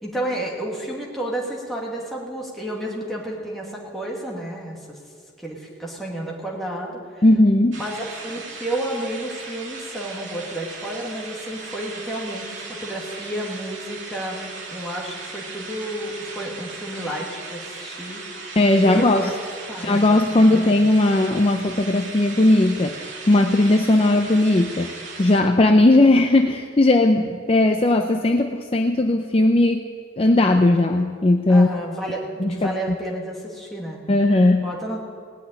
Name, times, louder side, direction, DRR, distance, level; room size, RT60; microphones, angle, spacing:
voice 1, 0.0-5.0 5.4-7.2 7.8-18.2 18.8-19.4 19.7-20.2 20.5-20.7 31.5-34.0 34.6-35.0, right 1 dB, ahead, -4 dB, 2.2 m, -31 dB
voice 2, 7.2-7.8 18.6-19.3 19.8-29.9 30.2-31.7 32.4-32.7 34.1-34.7, left 2 dB, 30° left, 4 dB, 0.5 m, -17 dB
sound 1, 7.7-25.4, right 3 dB, 75° right, 2.2 m, -37 dB
18.5 x 6.1 x 9.9 m, 2.1 s
head